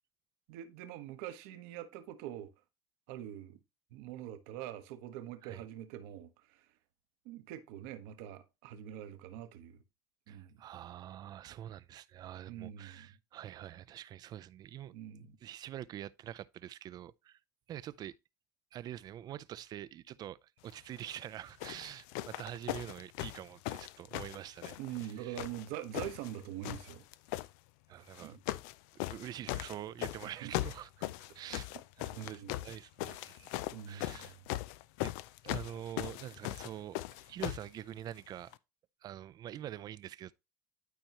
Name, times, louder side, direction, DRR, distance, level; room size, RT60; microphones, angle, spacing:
voice 1, 0.5-2.5 3.1-3.6 3.9-6.6 7.2-9.8 10.3-10.6 12.5-13.1 14.9-15.3 24.8-27.0 27.9-28.4 30.2-30.7 32.2-32.5 33.7-34.3, right 11 dB, 75° right, 1.1 m, -44 dB
voice 2, 10.3-17.4 17.7-18.1 18.7-24.8 25.2-25.5 27.9-28.4 29.1-31.7 32.0-34.4 35.0-35.1 35.4-38.6 39.0-40.3, right 11 dB, 50° right, 0.5 m, -46 dB
sound 1, 21.0-21.2 21.6-25.1 25.4-26.3 26.6-27.5 28.1-28.7 29.0-37.7 38.5-38.6, left 16 dB, 80° left, 0.4 m, -39 dB
11.5 x 4.5 x 2.9 m
supercardioid pair, 90°, 9 cm